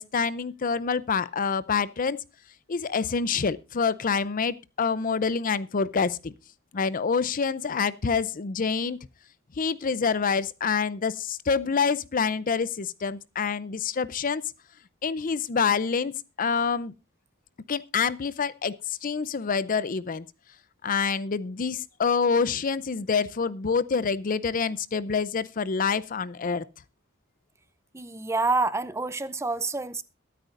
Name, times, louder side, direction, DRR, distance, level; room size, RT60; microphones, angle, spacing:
voice 1, 0.0-2.2 2.7-6.3 6.7-9.0 9.6-14.4 15.0-16.9 17.7-20.2 20.8-26.6, left 5 dB, 40° left, 0.5 m, -27 dB
voice 2, 27.9-30.0, right 3 dB, 15° right, 0.6 m, -27 dB
22.5 x 9.1 x 2.5 m
head